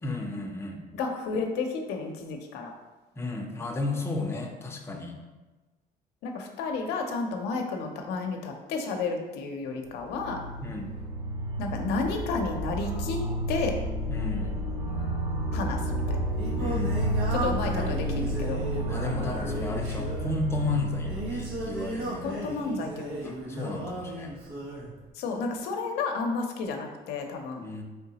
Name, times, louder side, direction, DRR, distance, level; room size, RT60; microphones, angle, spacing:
voice 1, 0.0-0.8 3.2-5.1 10.6-10.9 14.1-14.5 16.6-17.1 18.9-22.5 23.2-24.3 27.6-27.8, left 2 dB, 15° left, 1 dB, 0.5 m, -33 dB
voice 2, 0.9-2.7 6.2-10.4 11.6-13.2 13.5-13.7 15.5-16.2 17.3-18.6 22.2-23.3 25.2-27.6, left 4 dB, 90° left, 3 dB, 0.6 m, -32 dB
sound 1, 9.8-22.7, right 1 dB, 35° right, 1.0 m, -31 dB
Singing, 16.0-24.9, right 2 dB, 85° right, 1.0 m, -35 dB
3.8 x 3.4 x 2.8 m, 1.2 s
cardioid pair, 110°, 17 cm